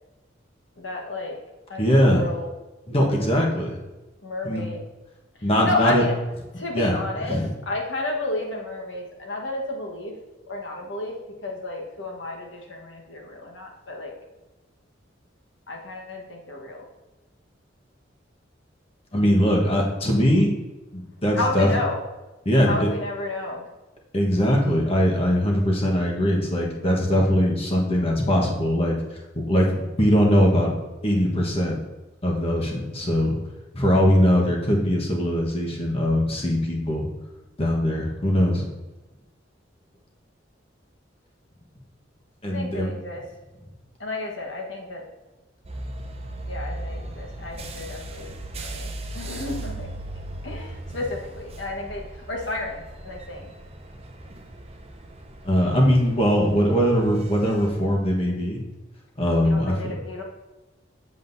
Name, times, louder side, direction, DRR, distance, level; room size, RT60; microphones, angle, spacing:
voice 1, 0.8-1.4 1.7-2.5 4.2-4.8 5.4-6.1 6.6-7.4 7.7-10.1 10.5-11.1 11.4-14.1 15.7-16.8 21.3-22.0 22.6-23.7 42.5-43.2 44.0-45.0 46.5-49.9 50.4-53.5 59.4-60.2, left 2 dB, 75° left, 0 dB, 1.3 m, -31 dB
voice 2, 1.8-2.2 2.9-3.8 4.4-4.7 5.4-6.0 6.7-6.9 7.3-7.5 19.1-20.5 20.9-21.7 22.4-22.9 24.1-29.0 29.3-30.7 31.0-31.7 32.2-33.4 33.7-37.1 37.6-38.7 42.4-42.9 55.4-58.6 59.2-59.9, equal, 30° left, -1 dB, 1.2 m, -21 dB
sound 1, 45.6-57.7, right 1 dB, 35° right, 0.7 m, -38 dB
7.7 x 7.4 x 2.7 m, 1.1 s
head